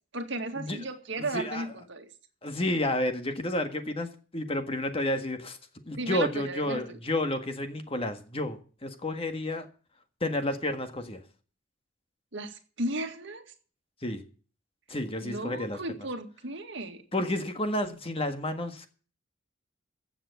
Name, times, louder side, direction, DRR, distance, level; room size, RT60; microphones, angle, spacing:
voice 1, 0.1-2.1 5.9-7.0 12.3-13.4 15.2-17.0, right 2 dB, 65° right, 2.0 m, -35 dB
voice 2, 1.2-1.6 2.4-5.6 5.8-9.7 10.2-11.2 14.0-14.2 14.9-15.8 17.1-18.9, left 1 dB, 30° left, 1.6 m, -31 dB
15.0 x 7.3 x 6.8 m
head